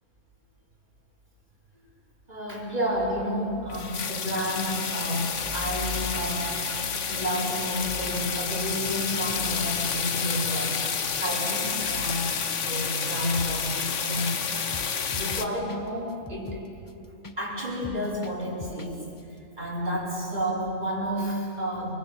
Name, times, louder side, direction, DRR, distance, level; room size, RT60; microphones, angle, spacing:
voice 1, 2.3-6.7 7.1-10.8 11.2-12.2 12.6-14.4 15.1-16.6 17.1-19.1 19.6-21.9, equal, 30° right, -3 dB, 5.1 m, -30 dB
sound 1, 3.7-15.5, left 6 dB, 55° left, 1.5 m, -30 dB
sound 2, 13.4-13.8 14.1-14.3 14.5-17.4 17.7-18.9 19.2-19.3, left 3 dB, 30° left, 0.4 m, -42 dB
28.5 x 24.5 x 7.4 m, 2.5 s
omnidirectional pair, 1.5 m